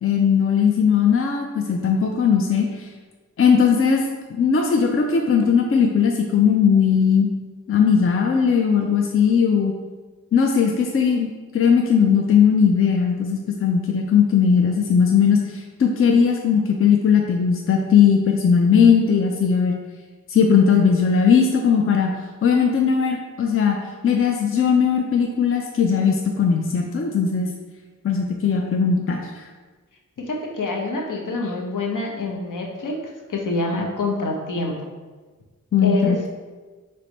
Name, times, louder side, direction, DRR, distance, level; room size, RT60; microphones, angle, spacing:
voice 1, 0.0-2.9 3.4-4.0 4.3-7.3 7.7-9.7 10.3-19.8 20.3-22.1 22.4-23.8 24.0-27.5 28.0-29.4 35.7-36.3, left 6 dB, 40° left, 2 dB, 0.4 m, -18 dB
voice 2, 30.3-32.9 33.3-34.7 35.8-36.2, left 3 dB, 65° left, -1 dB, 0.8 m, -26 dB
3.3 x 3.3 x 4.0 m, 1.3 s
wide cardioid pair, 75°, 34 cm